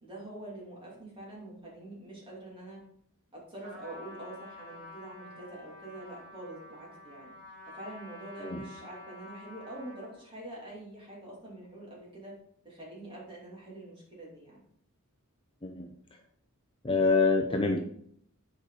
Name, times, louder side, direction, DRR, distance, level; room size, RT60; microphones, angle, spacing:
voice 1, 0.0-2.8 3.3-7.3 7.7-12.3 12.6-14.6, right 1 dB, 25° right, -5 dB, 2.7 m, -45 dB
Trumpet, 3.6-10.2, left 2 dB, 90° right, 3.0 m, -49 dB
voice 2, 16.8-17.8, left 4 dB, 25° left, 3 dB, 0.6 m, -26 dB
8.1 x 4.9 x 4.0 m, 0.66 s
head